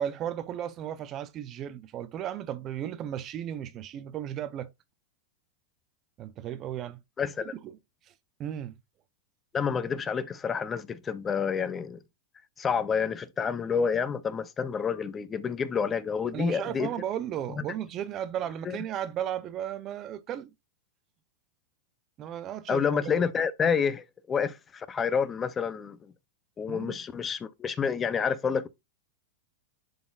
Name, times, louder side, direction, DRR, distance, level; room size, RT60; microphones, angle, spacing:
voice 1, 0.0-4.7 6.2-7.0 7.6-7.7 8.1-8.2 8.4-8.8 16.3-20.5 22.2-23.2 26.7-27.0, right 10 dB, 30° right, 0.5 m, -35 dB
voice 2, 7.2-7.5 9.5-12.0 12.6-16.9 17.6-17.7 18.6-18.8 22.7-26.1 26.6-28.7, left 6 dB, 20° left, 0.5 m, -29 dB
11.0 x 4.0 x 2.4 m
supercardioid pair, 140°, 0 cm